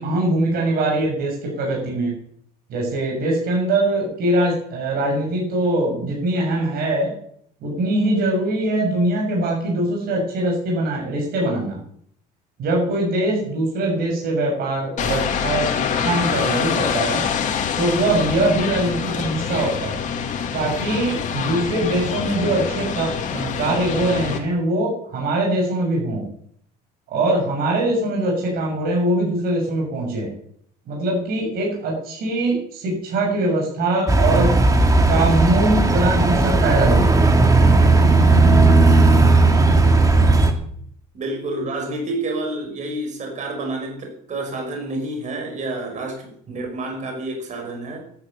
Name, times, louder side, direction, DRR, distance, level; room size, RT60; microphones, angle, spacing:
voice 1, 0.0-2.1 2.7-7.1 7.6-11.8 12.6-17.2 17.8-20.0 20.5-26.3 27.1-30.3 30.9-34.5 35.1-37.3, right 1 dB, 55° right, -2 dB, 7.1 m, -22 dB
sound 1, 15.0-24.4, left 7 dB, 45° left, 2.6 m, -25 dB
sound 2, 34.1-40.5, right 3 dB, 20° right, 2.3 m, -15 dB
voice 2, 41.1-48.1, right 2 dB, 40° right, 3 dB, 5.5 m, -29 dB
12.5 x 11.5 x 6.9 m, 0.65 s
supercardioid pair, 100°, 18 cm